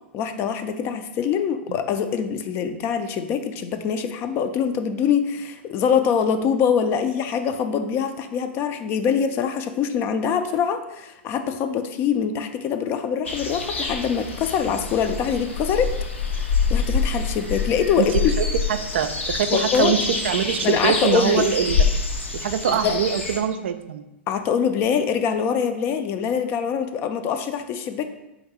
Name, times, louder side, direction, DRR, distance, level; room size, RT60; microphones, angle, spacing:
voice 1, 0.1-15.9 16.7-18.3 19.5-20.1 20.6-21.5 22.7-23.0 24.3-28.0, left 7 dB, 35° left, 8 dB, 0.4 m, -24 dB
sound 1, 13.2-23.4, left 4 dB, 80° left, 0.7 m, -26 dB
voice 2, 18.0-20.0 20.2-21.8 22.3-24.1, right 8 dB, 70° right, 9 dB, 0.3 m, -24 dB
3.7 x 2.6 x 4.6 m, 0.94 s
figure-of-eight pair, 95°, 6 cm